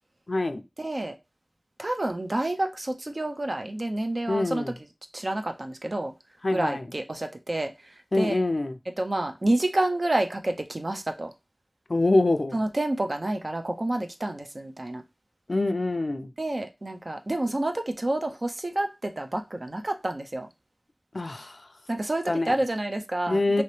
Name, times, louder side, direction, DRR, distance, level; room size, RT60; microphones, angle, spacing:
voice 1, 0.3-0.6 4.3-4.7 6.4-6.9 8.1-8.7 11.9-12.6 15.5-16.3 21.1-21.6 22.3-22.6 23.3-23.6, left 2 dB, 65° left, 0.4 m, -25 dB
voice 2, 0.8-1.1 1.8-4.6 5.1-6.1 6.5-8.4 9.0-11.3 12.5-15.0 16.4-20.5 21.9-23.6, right 1 dB, 55° right, 0.5 m, -29 dB
3.0 x 2.8 x 3.1 m
wide cardioid pair, 45°, 0 cm